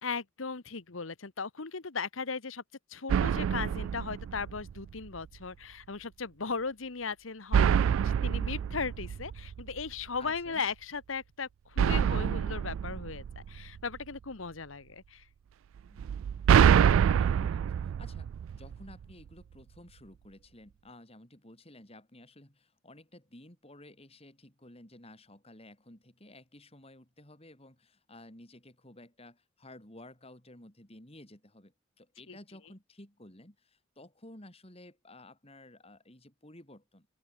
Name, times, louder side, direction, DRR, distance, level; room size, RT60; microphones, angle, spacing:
voice 1, 0.0-2.6 2.9-7.8 8.0-15.2 32.3-32.4, left 5 dB, 85° left, 1.3 m, -37 dB
sound 1, 3.1-5.0 7.5-9.9 11.8-14.0 16.0-19.0, right 8 dB, 85° right, 0.3 m, -26 dB
voice 2, 10.2-10.7 15.9-16.2 16.7-37.1, left 1 dB, 30° left, 4.7 m, -53 dB
open air
head